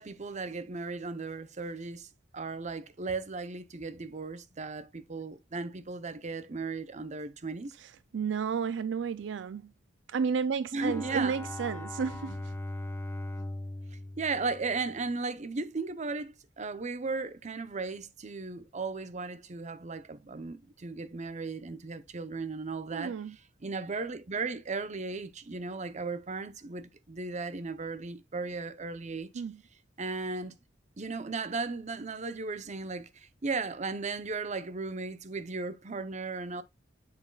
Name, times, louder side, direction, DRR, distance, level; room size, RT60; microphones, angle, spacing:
voice 1, 0.0-2.1 2.3-7.7 10.7-11.4 14.2-23.2 23.6-29.4 30.0-30.6 31.0-36.6, right 4 dB, 40° right, 0.7 m, -36 dB
voice 2, 7.8-9.7 10.1-12.6 22.9-23.4 29.3-29.6, right 6 dB, 70° right, 0.4 m, -32 dB
Bowed string instrument, 10.8-15.2, left 1 dB, 15° left, 0.6 m, -40 dB
7.9 x 7.0 x 2.3 m
head